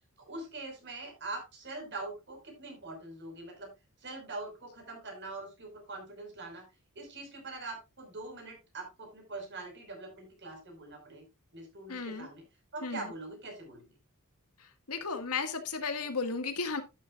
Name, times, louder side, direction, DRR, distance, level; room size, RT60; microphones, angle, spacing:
voice 1, 0.2-3.7 4.0-6.7 6.9-11.3 11.5-12.4 12.7-13.9, right 2 dB, 55° right, 3 dB, 4.9 m, -43 dB
voice 2, 11.9-12.3 12.8-13.1 14.9-16.8, left 4 dB, 90° left, 7 dB, 1.8 m, -34 dB
11.5 x 9.9 x 2.4 m, 0.26 s
head